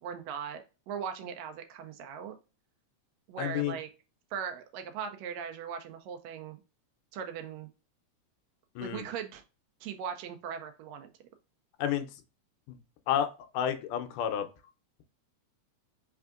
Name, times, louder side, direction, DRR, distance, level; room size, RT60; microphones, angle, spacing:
voice 1, 0.0-2.3 3.3-3.9 4.3-6.6 7.1-7.7 8.8-9.4 9.8-11.1, right 7 dB, 85° right, 6 dB, 1.5 m, -39 dB
voice 2, 3.4-3.7 8.8-9.0 11.8-12.1 12.7-12.8 13.1-13.3 13.5-14.5, left 10 dB, 85° left, 9 dB, 2.2 m, -30 dB
4.7 x 3.4 x 2.4 m, 0.31 s
omnidirectional pair, 3.6 m